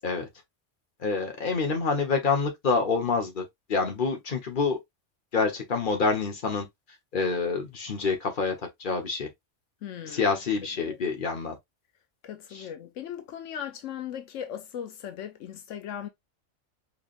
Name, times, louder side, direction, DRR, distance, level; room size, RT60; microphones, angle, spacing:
voice 1, 1.0-4.8 5.3-6.7 7.1-9.3 10.1-11.6 12.5-12.7, left 4 dB, 45° left, 1.3 m, -27 dB
voice 2, 9.8-10.3 10.8-11.0 12.2-16.1, left 9 dB, 85° left, 1.0 m, -38 dB
4.7 x 3.2 x 2.5 m
omnidirectional pair, 1.3 m